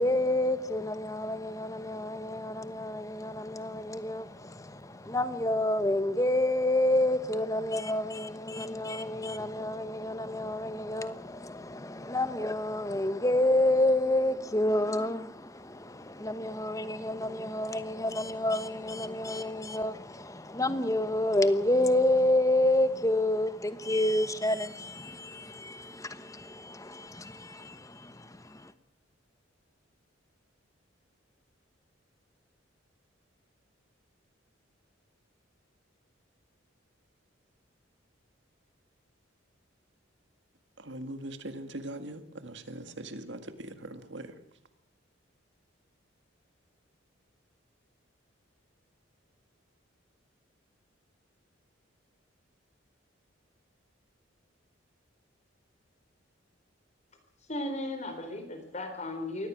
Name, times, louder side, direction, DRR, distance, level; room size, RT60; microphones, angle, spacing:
voice 1, 0.0-28.7, left 1 dB, 15° left, 1.0 m, -29 dB
voice 2, 40.8-44.4, right 1 dB, 60° right, 1.9 m, -41 dB
voice 3, 57.5-59.5, left 1 dB, 35° left, 3.9 m, -36 dB
23.0 x 17.5 x 6.3 m
head